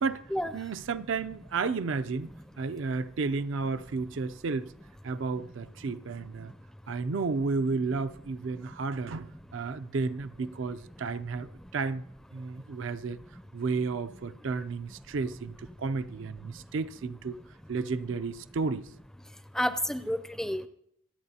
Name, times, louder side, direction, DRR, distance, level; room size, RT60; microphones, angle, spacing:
voice 1, 0.5-2.3 2.6-4.7 5.0-6.5 6.9-12.1 12.3-13.2 13.5-17.4 17.7-18.9, right 4 dB, 65° right, 0.5 m, -32 dB
voice 2, 19.5-20.7, equal, 5° left, 0.4 m, -30 dB
25.5 x 8.7 x 2.8 m
head